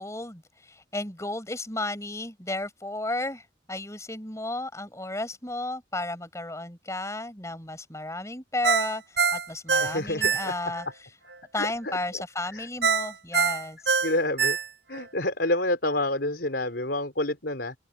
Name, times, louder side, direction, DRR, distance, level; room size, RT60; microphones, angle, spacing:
voice 1, 0.0-11.1 11.5-14.0, left 2 dB, 15° left, 5.2 m, -33 dB
Ringtone, 8.6-10.9 11.3-11.4 12.8-15.1 15.5-15.6, right 5 dB, 70° right, 7.5 m, -25 dB
voice 2, 9.8-10.5 11.6-12.6 13.3-13.4 14.0-14.6 14.9-17.8, left 1 dB, 70° left, 4.3 m, -29 dB
open air
head